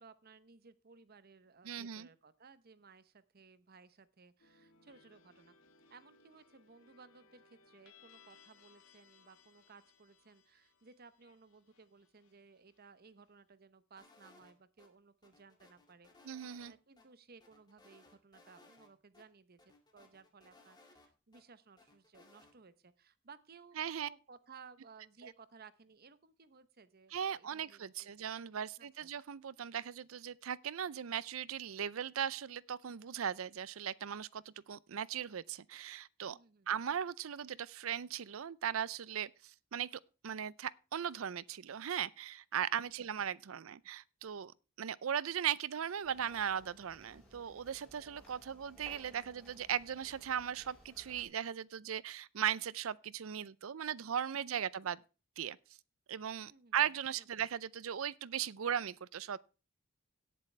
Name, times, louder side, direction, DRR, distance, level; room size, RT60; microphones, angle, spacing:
voice 1, 0.0-5.5 5.9-16.1 16.6-28.3 28.8-29.1 36.3-36.7 42.8-42.9 54.4-54.6 56.5-56.8 57.2-57.3, right 5 dB, 50° right, 0.8 m, -60 dB
voice 2, 1.6-2.1 16.2-16.7 23.8-24.1 27.1-36.4 36.7-44.5 44.8-55.0 55.4-55.6 56.1-59.4, right 8 dB, 80° right, 0.5 m, -38 dB
sound 1, 4.4-13.3, left 5 dB, 85° left, 2.0 m, -66 dB
sound 2, 14.0-14.9 15.2-16.7 17.0-17.1 17.4-18.9 19.1-19.2 19.6-21.4 21.8-22.5, left 2 dB, 20° left, 2.2 m, -63 dB
sound 3, 46.0-51.2, equal, 5° left, 7.3 m, -60 dB
17.5 x 7.6 x 3.3 m
head